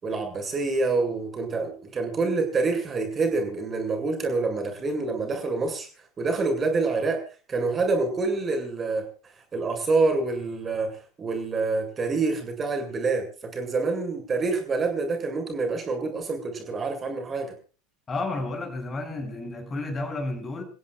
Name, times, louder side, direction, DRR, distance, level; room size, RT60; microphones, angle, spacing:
voice 1, 0.0-5.9 6.2-7.2 7.5-9.1 9.5-17.5, right 3 dB, 25° right, 7.3 m, -27 dB
voice 2, 18.1-20.6, left 2 dB, 25° left, 7.6 m, -31 dB
29.5 x 16.0 x 2.5 m
figure-of-eight pair, 75°, 0 cm